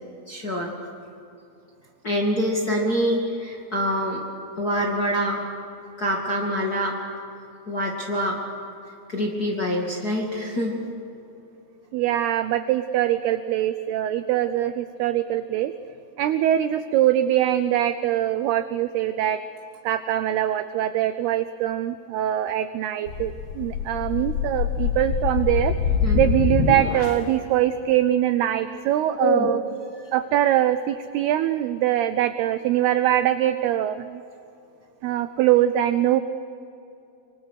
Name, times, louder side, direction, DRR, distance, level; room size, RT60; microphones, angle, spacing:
voice 1, 0.3-0.7 2.0-4.2 4.6-5.4 6.0-7.0 7.7-8.4 9.1-10.7 26.0-26.2 29.2-29.5 29.9-30.0, equal, 30° left, -2 dB, 1.8 m, -25 dB
voice 2, 11.9-15.7 16.2-19.4 19.8-25.8 26.1-29.6 30.1-34.2 35.0-36.2, right 12 dB, 85° right, 11 dB, 2.3 m, -23 dB
sound 1, 23.1-27.4, left 6 dB, 70° left, 2.9 m, -25 dB
25.5 x 25.0 x 6.5 m, 2.7 s
omnidirectional pair, 5.3 m